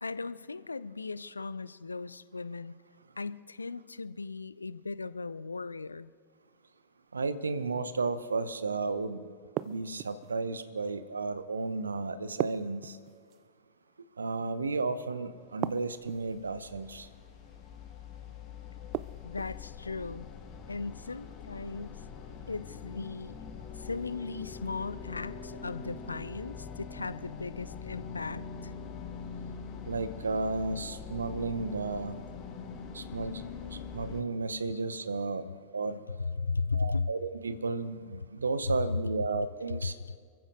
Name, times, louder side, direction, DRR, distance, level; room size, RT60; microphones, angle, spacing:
voice 1, 0.0-2.8 3.2-6.1 19.2-20.3 20.7-22.1 22.5-23.4 23.7-28.7 34.7-34.8 36.3-37.1 39.8-40.2, left 4 dB, 80° left, 16 dB, 0.4 m, -37 dB
voice 2, 7.1-9.2 9.6-13.0 14.2-17.1 29.8-32.2 32.9-33.5 33.7-35.5 35.7-36.0 36.7-40.0, right 3 dB, 75° right, 13 dB, 0.7 m, -33 dB
sound 1, 9.6-10.3 12.4-13.4 15.6-16.4 18.9-19.6, right 16 dB, 40° right, 0.3 m, -36 dB
sound 2, 15.8-34.2, left 6 dB, 35° left, 1.4 m, -43 dB
28.5 x 15.0 x 2.6 m, 2.1 s
figure-of-eight pair, 90°, 0 cm